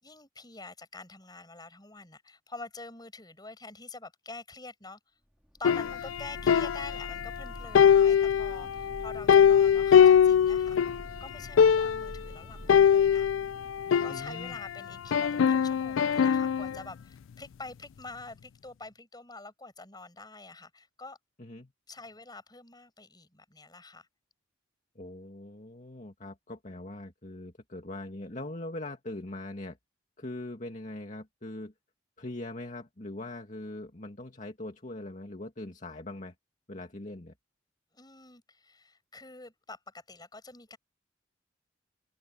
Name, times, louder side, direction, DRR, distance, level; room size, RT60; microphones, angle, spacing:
voice 1, 0.0-5.0 5.6-10.8 11.2-13.3 14.0-21.2 21.9-24.1 37.9-40.8, left 3 dB, 20° left, 6.1 m, -46 dB
sound 1, 5.4-14.7, equal, 5° right, 2.0 m, -47 dB
sound 2, 5.6-7.4 7.7-11.0 11.3-11.4 11.6-12.2 12.7-14.7 15.1-16.8, left 8 dB, 90° left, 0.4 m, -22 dB
voice 2, 14.1-14.6 21.4-21.7 25.0-29.8 30.2-31.7 32.2-36.3 36.7-37.3, left 1 dB, 40° left, 2.1 m, -41 dB
head